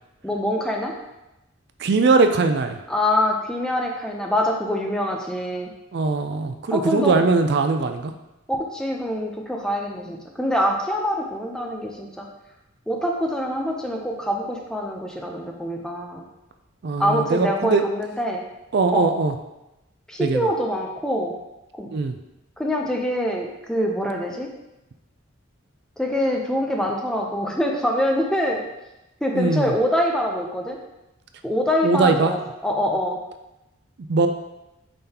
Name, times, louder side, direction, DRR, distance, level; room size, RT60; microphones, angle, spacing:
voice 1, 0.2-0.9 2.9-5.7 6.7-7.3 8.5-12.3 12.9-16.2 17.0-18.4 18.9-19.1 20.1-21.3 21.8-21.9 22.6-24.5 26.0-28.6 29.2-30.8 31.4-33.2, left 1 dB, 5° left, 0 dB, 0.6 m, -24 dB
voice 2, 1.8-2.8 5.9-8.1 16.8-17.8 18.7-19.3 20.2-20.5 21.9-22.1 29.3-29.7 31.8-32.3 34.1-34.3, right 4 dB, 55° right, 7 dB, 0.4 m, -20 dB
8.8 x 3.8 x 2.9 m, 0.95 s
head